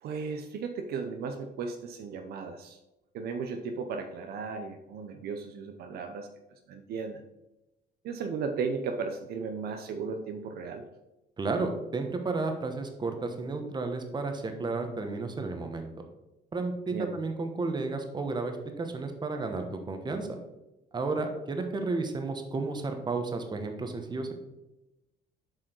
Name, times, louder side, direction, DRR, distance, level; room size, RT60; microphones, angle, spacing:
voice 1, 0.0-2.8 3.1-6.3 6.7-7.2 8.0-10.8 16.9-17.1, right 5 dB, 70° right, 6 dB, 0.7 m, -35 dB
voice 2, 11.4-15.9 16.5-20.3 20.9-24.3, right 3 dB, 25° right, 5 dB, 1.2 m, -32 dB
7.6 x 4.9 x 4.5 m, 0.97 s
cardioid pair, 110°, 17 cm